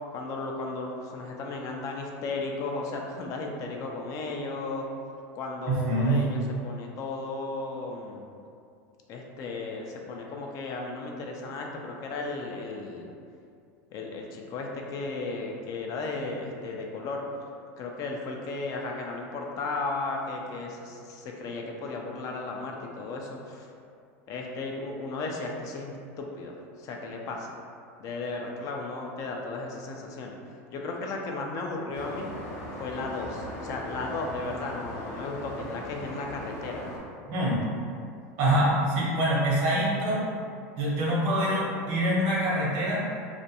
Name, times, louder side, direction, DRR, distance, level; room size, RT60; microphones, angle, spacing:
voice 1, 0.1-4.9 5.3-8.3 9.1-13.1 13.9-17.2 17.8-23.7 24.3-27.5 28.0-30.4 30.7-32.3 32.8-36.9, left 3 dB, 45° left, 0 dB, 0.4 m, -35 dB
voice 2, 5.7-6.3 37.3-37.6 38.4-40.2 40.8-43.0, right 1 dB, 60° right, -5 dB, 0.9 m, -25 dB
sound 1, 31.9-37.0, equal, 75° left, 0.7 m, -39 dB
2.4 x 2.2 x 2.7 m, 2.4 s
supercardioid pair, 110°, 8 cm